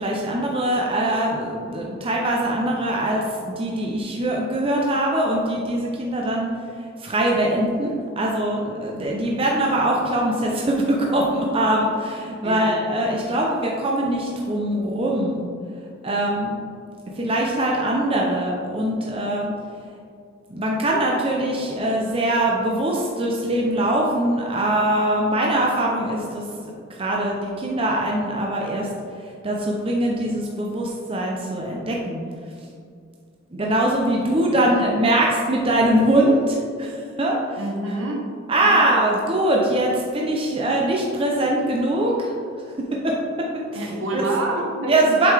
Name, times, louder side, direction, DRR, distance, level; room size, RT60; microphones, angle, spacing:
voice 1, 0.0-6.5 7.0-15.4 16.0-16.6 17.2-19.5 20.5-28.9 29.4-32.2 33.5-37.4 38.5-42.3 43.0-43.2 43.7-43.9 44.1-44.2 44.9-45.3, right 1 dB, 25° right, -2 dB, 0.6 m, -22 dB
voice 2, 12.4-12.8 34.2-34.9 37.6-38.3 38.6-38.9 43.7-45.2, right 2 dB, 75° right, -1 dB, 1.0 m, -28 dB
7.7 x 5.6 x 3.4 m, 2.3 s
head